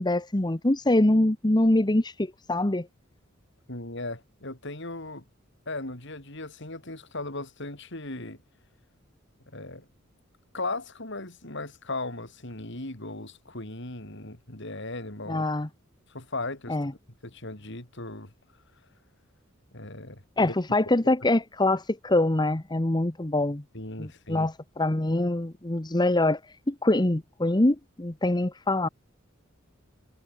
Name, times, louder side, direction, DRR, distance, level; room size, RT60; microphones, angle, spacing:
voice 1, 0.0-2.9 15.3-15.7 16.7-16.9 20.4-23.6 24.0-26.4 26.7-28.9, left 1 dB, 20° left, 1.0 m, -24 dB
voice 2, 3.7-5.2 5.7-8.4 9.5-9.9 10.5-15.4 16.1-16.9 17.2-18.3 19.7-20.5 23.7-24.5, left 2 dB, 60° left, 5.8 m, -37 dB
head